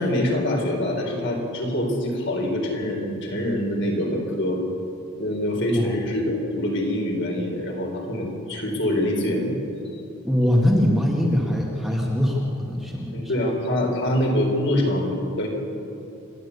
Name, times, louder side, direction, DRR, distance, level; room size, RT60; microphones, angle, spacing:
voice 1, 0.0-4.6 5.2-9.5 13.1-15.5, left 1 dB, 55° left, 0 dB, 4.2 m, -25 dB
voice 2, 5.6-5.9 10.2-13.3, equal, ahead, -2 dB, 1.9 m, -22 dB
28.0 x 12.0 x 8.3 m, 2.8 s
head